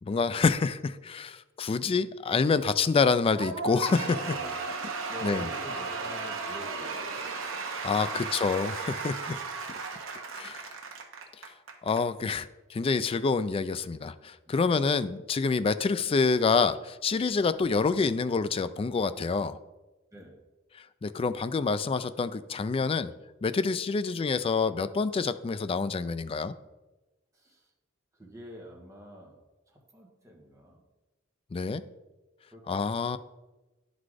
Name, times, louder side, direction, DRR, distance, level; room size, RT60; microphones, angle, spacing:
voice 1, 0.0-4.2 5.2-5.5 7.8-9.3 10.3-10.7 11.8-19.6 21.0-23.1 23.4-26.5 31.5-31.8 32.7-33.2, left 4 dB, 30° left, 13 dB, 0.3 m, -27 dB
Cheering / Applause / Crowd, 3.4-12.0, right 4 dB, 75° right, 1.0 m, -35 dB
voice 2, 4.2-4.6 5.1-7.3 8.0-8.1 9.0-9.4 20.1-20.4 27.3-27.7 28.1-29.4 29.7-30.8 32.5-33.0, equal, 15° right, -1 dB, 1.7 m, -47 dB
10.5 x 4.0 x 4.8 m, 1.1 s
head